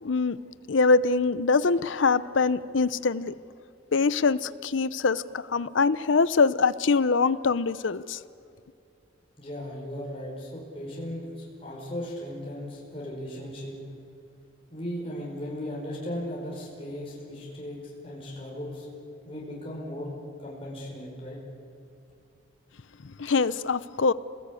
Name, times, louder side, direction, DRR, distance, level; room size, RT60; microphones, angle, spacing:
voice 1, 0.0-0.4 0.7-3.3 3.9-8.2 23.0-24.1, left 4 dB, 85° left, 0.7 m, -24 dB
voice 2, 9.4-13.8 14.7-18.9 19.2-20.1 20.4-21.4, equal, 30° left, 4.9 m, -37 dB
27.5 x 20.0 x 8.4 m
head